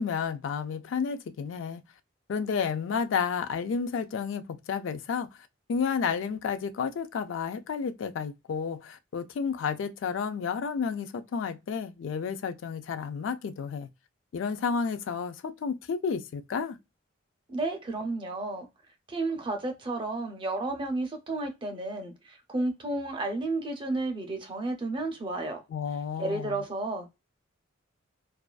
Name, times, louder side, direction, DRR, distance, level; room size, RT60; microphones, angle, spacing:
voice 1, 0.0-1.8 2.3-5.3 5.7-13.9 14.3-16.8 25.7-26.5, left 6 dB, 65° left, 0.3 m, -31 dB
voice 2, 17.5-18.7 19.1-25.6 26.2-27.1, right 2 dB, 25° right, 0.5 m, -32 dB
2.4 x 2.3 x 2.2 m
head